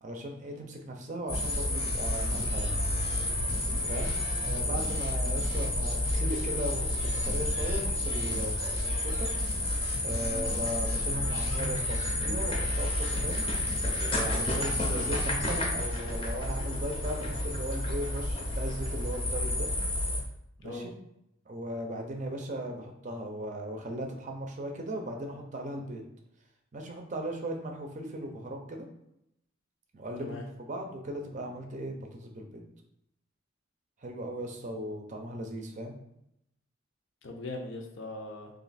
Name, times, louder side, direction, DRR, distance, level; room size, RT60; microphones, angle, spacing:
voice 1, 0.0-2.8 3.8-4.2 4.4-9.3 10.0-13.5 14.1-19.7 20.6-20.9 21.5-26.0 26.7-28.9 29.9-32.6 34.0-36.0, right 1 dB, 35° right, 2 dB, 0.5 m, -37 dB
sound 1, 1.3-15.6, left 1 dB, 85° left, 1.1 m, -41 dB
sound 2, 1.3-20.2, left 1 dB, 25° left, 0.7 m, -30 dB
voice 2, 37.2-38.5, left 2 dB, 65° left, 2 dB, 0.6 m, -40 dB
3.1 x 2.6 x 4.0 m, 0.80 s
head